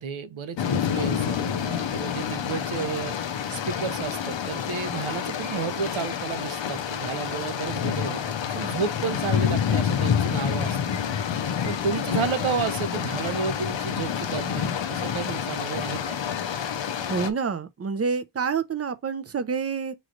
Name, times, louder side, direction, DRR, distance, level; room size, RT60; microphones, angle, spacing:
voice 1, 0.0-10.8 11.7-16.2, right 6 dB, 85° right, 0.8 m, -32 dB
sound 1, 0.6-17.3, left 8 dB, 70° left, 0.6 m, -28 dB
voice 2, 17.1-19.9, right 5 dB, 35° right, 0.4 m, -28 dB
6.1 x 3.1 x 2.5 m
wide cardioid pair, 125°, 47 cm